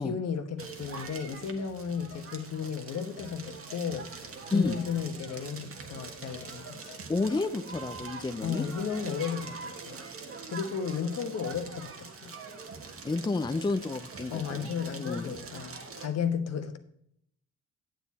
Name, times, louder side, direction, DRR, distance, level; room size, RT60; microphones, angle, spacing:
voice 1, 0.0-6.9 8.4-10.0 10.5-12.3 14.3-16.8, left 7 dB, 55° left, 1.2 m, -34 dB
Crackle, 0.6-16.1, right 4 dB, 45° right, 1.4 m, -43 dB
Keyboard (musical), 1.1-1.2 1.6-1.7 2.1-2.3 2.6-2.8 3.2-3.3 3.7-3.8 4.2-4.4 4.8-4.9 5.3-5.4 5.8-6.0 6.4-6.5 6.9-7.0, left 12 dB, 80° left, 1.3 m, -52 dB
voice 2, 7.1-8.7 13.0-14.7 15.0-15.3, left 3 dB, 15° left, 0.6 m, -30 dB
9.0 x 7.3 x 4.1 m
supercardioid pair, 65°, 30 cm